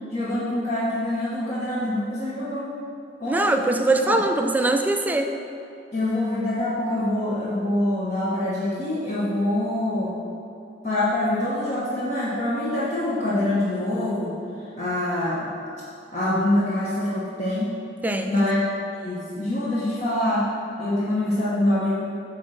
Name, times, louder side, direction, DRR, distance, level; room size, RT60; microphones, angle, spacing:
voice 1, 0.1-2.7 3.2-3.6 4.0-4.2 5.9-10.2 10.8-14.4 14.8-15.5 16.1-17.7 18.3-20.5 20.8-21.9, left 1 dB, 40° left, -9 dB, 1.2 m, -25 dB
voice 2, 3.3-5.3 18.0-18.5, right 2 dB, 10° right, 5 dB, 0.4 m, -22 dB
9.1 x 3.2 x 6.2 m, 2.7 s
head